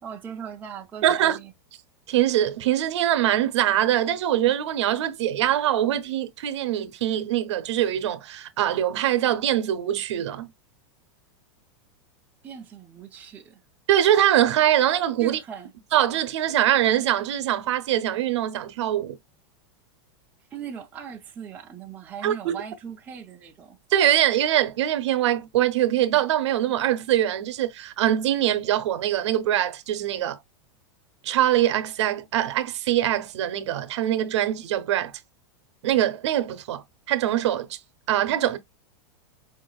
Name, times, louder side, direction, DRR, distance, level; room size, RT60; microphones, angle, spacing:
voice 1, 0.0-1.5 12.4-13.6 15.2-15.7 20.5-23.8, right 7 dB, 10° right, 0.5 m, -39 dB
voice 2, 1.0-1.4 2.1-10.5 13.9-15.4 15.9-19.2 22.2-22.6 23.9-30.4 31.2-35.1 35.8-37.8 38.1-38.6, right 12 dB, 75° right, 0.7 m, -23 dB
4.7 x 2.4 x 2.2 m
supercardioid pair, 170°, 15 cm